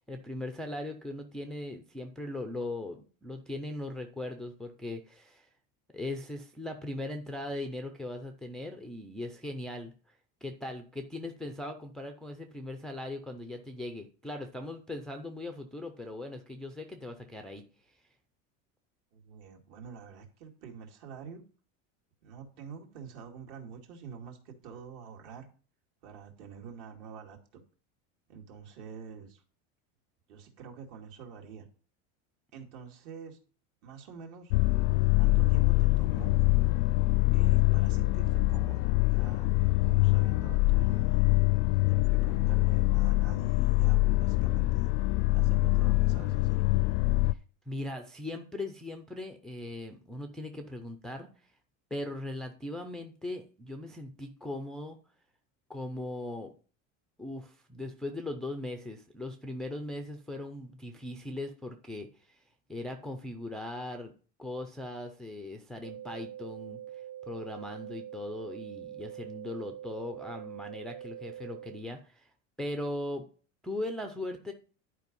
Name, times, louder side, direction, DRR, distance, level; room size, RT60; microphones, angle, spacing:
voice 1, 0.0-5.5 5.9-9.9 10.4-17.6 47.2-47.4 47.7-51.3 51.9-55.0 55.7-56.5 57.2-62.4 62.7-64.1 64.4-72.3 72.6-73.3 73.6-74.5, left 1 dB, ahead, 4 dB, 0.4 m, -39 dB
voice 2, 19.1-21.4 22.2-25.5 26.0-27.6 28.3-29.4 30.3-31.7 32.5-33.4 33.8-34.5 35.2-36.4 37.3-39.5 39.8-41.3 41.8-44.9 45.3-46.6, right 6 dB, 55° right, 2 dB, 2.4 m, -47 dB
sound 1, 34.5-47.3, left 20 dB, 65° left, 0.5 m, -24 dB
sound 2, 65.8-71.8, right 11 dB, 25° right, 1.4 m, -44 dB
11.0 x 5.0 x 5.3 m, 0.39 s
cardioid pair, 160°, 37 cm